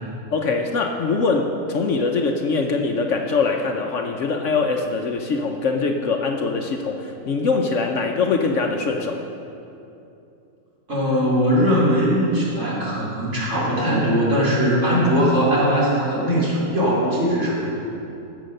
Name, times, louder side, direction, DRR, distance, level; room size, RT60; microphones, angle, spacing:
voice 1, 0.3-9.2, left 4 dB, 60° left, 3 dB, 1.0 m, -23 dB
voice 2, 10.9-17.7, equal, 50° right, -7 dB, 3.5 m, -20 dB
15.5 x 6.6 x 6.5 m, 2.8 s
omnidirectional pair, 1.6 m